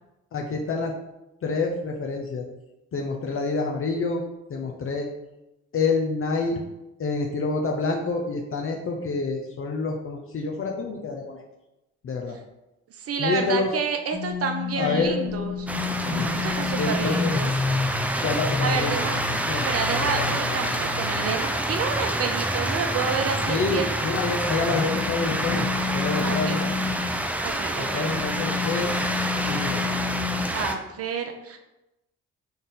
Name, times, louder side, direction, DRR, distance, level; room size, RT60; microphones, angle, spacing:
voice 1, 0.3-0.9 1.4-2.5 2.9-4.2 4.5-5.1 5.7-6.6 7.0-11.4 12.0-12.4 13.2-13.7 14.8-15.2 16.0-16.3 16.8-17.3 18.2-18.9 19.5-19.7 20.0-20.6 23.5-26.7 27.8-28.9 29.5-29.9, left 4 dB, 40° left, 1 dB, 0.6 m, -27 dB
voice 2, 13.0-15.7 16.4-17.5 18.6-19.2 19.7-23.9 26.2-26.6 27.4-28.1 30.5-31.6, right 6 dB, 45° right, 5 dB, 0.6 m, -29 dB
sound 1, 14.1-27.2 27.8-30.4, left 5 dB, 15° left, 1.0 m, -31 dB
sound 2, 15.7-30.8, right 1 dB, 5° right, 0.4 m, -28 dB
3.9 x 2.5 x 3.8 m, 0.96 s
hypercardioid pair, 50°, 32 cm